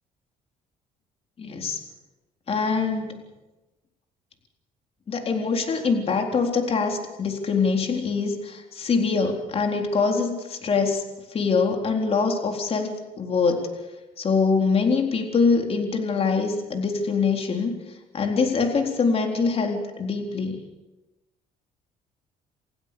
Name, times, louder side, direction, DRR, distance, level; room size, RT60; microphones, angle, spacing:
voice 1, 1.4-1.8 2.5-3.2 5.1-11.0 11.3-13.7 14.2-17.7 18.1-20.6, left 4 dB, 45° left, 3 dB, 4.0 m, -24 dB
28.5 x 15.5 x 7.0 m, 1.1 s
cardioid pair, 95°, 14 cm